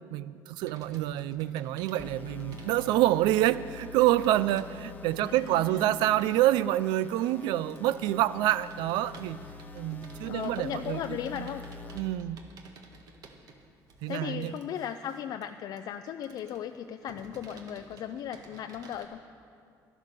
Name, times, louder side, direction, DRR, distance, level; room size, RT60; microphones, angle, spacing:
voice 1, 0.1-9.4 9.7-11.0 11.3-11.5 11.9-12.4 14.0-14.5, right 14 dB, 90° right, 17 dB, 0.4 m, -27 dB
Computer keyboard, 0.6-19.1, right 3 dB, 55° right, 1.4 m, -54 dB
sound 1, 2.0-12.0, left 4 dB, 20° left, 0.9 m, -46 dB
voice 2, 5.2-5.9 10.3-11.6 14.1-19.2, left 9 dB, 60° left, 8 dB, 0.4 m, -37 dB
12.0 x 10.5 x 6.7 m, 2.4 s
cardioid pair, 120°, 8 cm